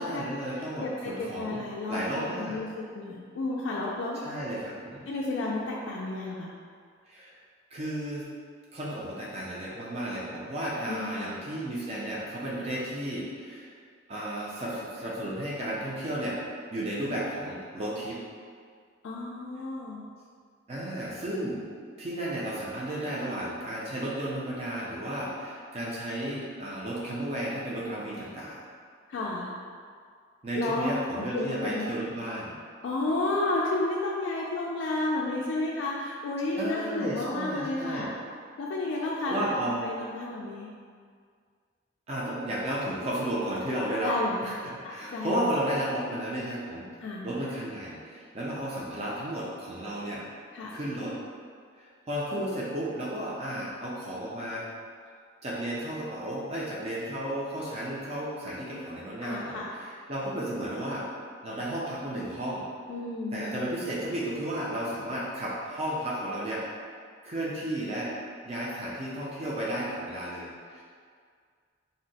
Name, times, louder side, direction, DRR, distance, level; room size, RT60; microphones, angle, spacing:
voice 1, 0.0-1.6 1.9-2.6 4.2-5.0 7.1-7.3 7.7-8.3 8.7-13.7 14.1-16.4 16.7-18.2 20.7-21.6 22.0-28.6 30.4-32.6 36.5-38.1 39.3-39.9 42.1-44.1 44.4-46.9 47.2-50.2 50.7-51.2 51.8-54.7 55.4-61.1 61.4-62.6 63.3-66.6 67.2-68.1 68.4-70.8, right 1 dB, 30° right, -6 dB, 0.4 m, -33 dB
voice 2, 0.5-4.2 5.1-6.5 10.9-11.3 19.0-20.1 29.1-29.5 30.5-31.9 32.8-38.2 38.6-39.4 39.8-40.7 44.0-45.4 47.0-47.3 50.5-50.8 58.7-58.8 59.2-59.7 62.9-63.7, left 2 dB, 70° left, -3 dB, 0.3 m, -32 dB
2.6 x 2.1 x 3.9 m, 2.1 s
head